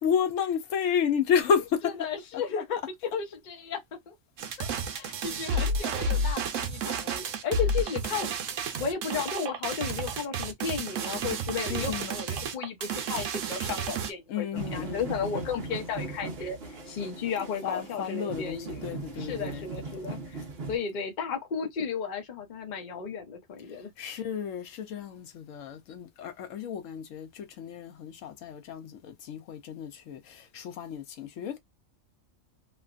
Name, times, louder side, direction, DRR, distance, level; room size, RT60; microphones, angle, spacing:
voice 1, 0.0-1.9 2.3-2.6 11.7-12.1 14.3-15.1 17.6-19.7 24.0-31.6, left 7 dB, 80° left, 1.0 m, -31 dB
voice 2, 2.0-2.8 3.1-4.2 4.6-4.7 4.9-8.3 8.8-23.9, left 6 dB, 45° left, 0.7 m, -34 dB
sound 1, 4.4-14.1, right 2 dB, 75° right, 1.0 m, -31 dB
sound 2, 14.5-20.8, right 3 dB, 55° right, 1.1 m, -39 dB
3.0 x 2.2 x 2.4 m
omnidirectional pair, 1.3 m